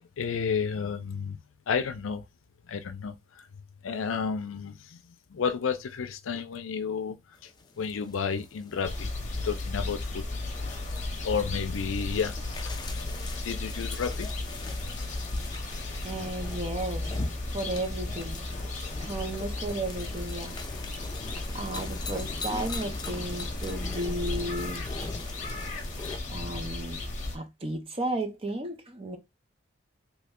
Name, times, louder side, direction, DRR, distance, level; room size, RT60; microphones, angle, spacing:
voice 1, 0.2-1.4 1.7-2.2 2.7-3.5 3.8-7.2 7.4-7.5 7.8-9.1 9.4-10.2 10.6-10.7 11.2-12.3 12.6-13.1 13.4-14.3 19.2-19.5, left 6 dB, 90° left, 0.5 m, -32 dB
sound 1, 7.3-26.2, left 3 dB, 20° left, 0.4 m, -43 dB
sound 2, 8.8-27.4, left 2 dB, 40° left, 0.8 m, -35 dB
voice 2, 16.0-17.2 17.5-18.5 19.0-20.6 21.5-24.9 26.3-27.0 27.3-29.2, right 1 dB, 30° right, 0.6 m, -34 dB
3.1 x 2.1 x 3.5 m
head